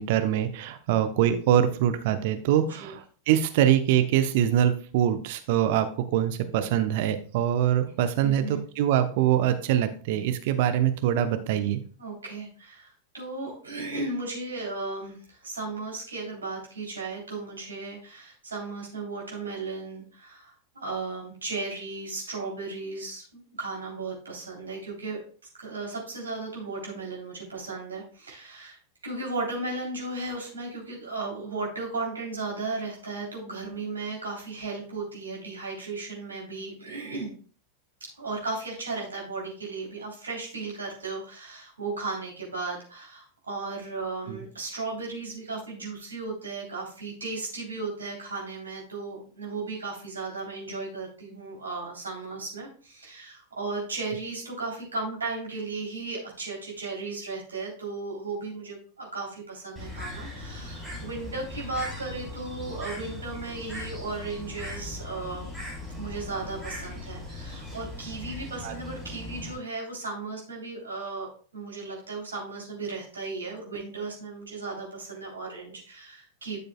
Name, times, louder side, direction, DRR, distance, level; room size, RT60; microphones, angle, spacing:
voice 1, 0.0-3.0 3.3-11.8 44.3-44.4 68.6-68.7, right 10 dB, 50° right, 9 dB, 0.9 m, -24 dB
voice 2, 8.2-8.6 12.0-25.2 25.6-28.8 29.0-37.3 38.2-65.5 65.9-71.3 71.5-76.6, right 3 dB, 75° right, -3 dB, 3.5 m, -35 dB
Bird, 59.8-69.6, left 1 dB, 5° left, 3.7 m, -39 dB
12.0 x 6.7 x 2.3 m, 0.41 s
figure-of-eight pair, 90°, 0 cm